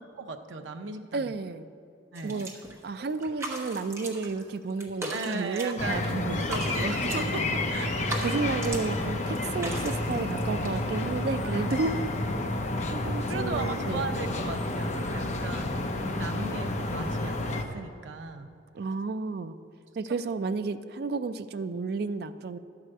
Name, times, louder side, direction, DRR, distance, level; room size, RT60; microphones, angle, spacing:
voice 1, 0.0-1.3 2.1-2.5 5.1-6.2 6.5-8.2 11.4-11.5 13.3-18.5, right 3 dB, 80° right, 5 dB, 0.7 m, -37 dB
voice 2, 1.1-1.7 2.2-2.5 2.8-6.5 8.2-12.0 12.9-14.1 18.7-19.5 20.0-22.6, right 4 dB, 55° right, 10 dB, 0.3 m, -32 dB
sound 1, 2.1-2.8 3.0-4.4 4.7-6.0 6.3-7.4 7.9-9.1 9.3-10.7, right 2 dB, 15° right, 0.9 m, -38 dB
sound 2, 5.8-17.6, left 2 dB, 35° left, 0.6 m, -30 dB
11.0 x 4.8 x 7.7 m, 2.5 s
head